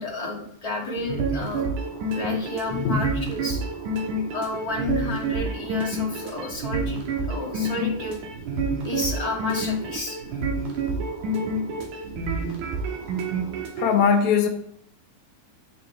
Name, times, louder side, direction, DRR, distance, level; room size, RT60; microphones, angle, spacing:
voice 1, 0.0-1.7 2.1-3.6 4.3-7.0 7.3-8.2 8.8-10.2, left 2 dB, 15° left, -5 dB, 1.2 m, -31 dB
sound 1, 1.0-13.9, right 2 dB, 70° right, 2.7 m, -28 dB
voice 2, 2.7-3.0 13.8-14.5, left 6 dB, 70° left, 5 dB, 1.9 m, -20 dB
8.1 x 7.1 x 3.3 m, 0.68 s
omnidirectional pair, 3.9 m